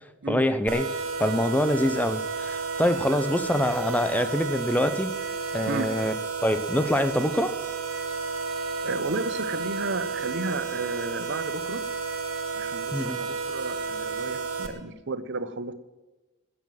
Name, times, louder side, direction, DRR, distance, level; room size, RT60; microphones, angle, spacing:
voice 1, 0.3-0.9 1.2-5.1 5.5-6.1 6.4-7.5 12.9-13.2, left 1 dB, 10° left, 12 dB, 0.7 m, -25 dB
sound 1, 0.7-14.7, right 4 dB, 90° right, 1.9 m, -32 dB
voice 2, 8.8-11.8 12.5-15.7, right 3 dB, 55° right, 12 dB, 0.9 m, -33 dB
13.5 x 9.6 x 7.6 m, 1.1 s
head